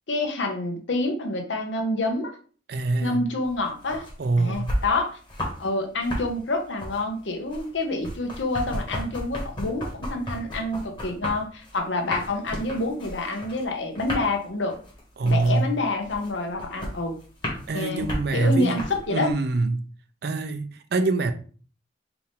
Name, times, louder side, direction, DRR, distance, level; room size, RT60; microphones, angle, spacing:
voice 1, 0.1-2.3 3.0-4.0 4.4-5.2 5.6-14.8 15.2-17.2 17.7-19.3, left 2 dB, 85° left, 0.9 m, -27 dB
voice 2, 2.7-3.3 4.2-4.8 15.2-15.8 17.7-18.8 19.1-19.9 20.2-21.3, right 3 dB, 60° right, 0.5 m, -24 dB
sound 1, 3.4-5.7 5.9-19.3, equal, 25° left, 1.3 m, -34 dB
4.5 x 2.6 x 3.5 m
head